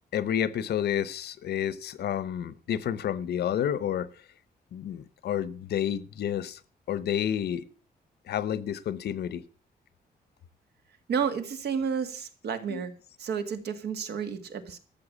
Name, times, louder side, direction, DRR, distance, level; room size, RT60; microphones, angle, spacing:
voice 1, 0.1-4.1 4.7-6.6 6.9-7.7 8.3-9.4 12.7-12.8, left 10 dB, 85° left, 0.9 m, -30 dB
voice 2, 11.1-12.9 13.2-14.8, right 6 dB, 85° right, 2.0 m, -31 dB
13.5 x 7.0 x 8.4 m
wide cardioid pair, 140°, 17 cm